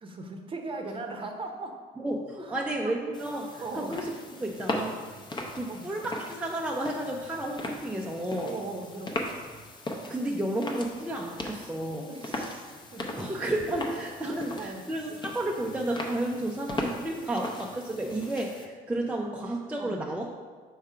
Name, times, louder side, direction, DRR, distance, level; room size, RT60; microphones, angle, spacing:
voice 1, 0.0-1.8 2.4-2.9 3.6-3.9 5.7-5.9 8.4-9.5 12.1-13.2 14.2-14.8 19.8-20.0, right 3 dB, 30° right, 3 dB, 0.8 m, -39 dB
voice 2, 2.0-5.0 5.5-8.5 10.1-12.1 13.2-20.4, right 1 dB, 10° right, -1 dB, 0.5 m, -32 dB
sound 1, 3.1-18.7, left 1 dB, 25° left, 0.8 m, -39 dB
4.7 x 3.6 x 5.5 m, 1.5 s
cardioid pair, 110°, 17 cm